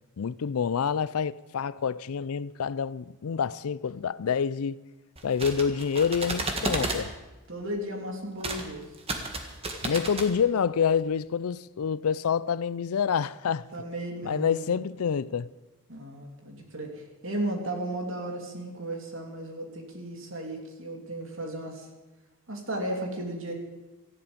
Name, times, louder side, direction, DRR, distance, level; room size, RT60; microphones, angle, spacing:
voice 1, 0.2-4.8 5.2-7.1 9.8-13.7 14.2-15.5, left 7 dB, 75° left, 0.4 m, -27 dB
sound 1, 5.2-7.0 8.4-8.6 8.9-10.3, right 2 dB, 25° right, 1.7 m, -32 dB
voice 2, 7.5-8.8 13.7-14.8 15.9-21.9 22.5-23.5, right 1 dB, 60° right, 3.0 m, -35 dB
18.0 x 14.0 x 5.2 m
head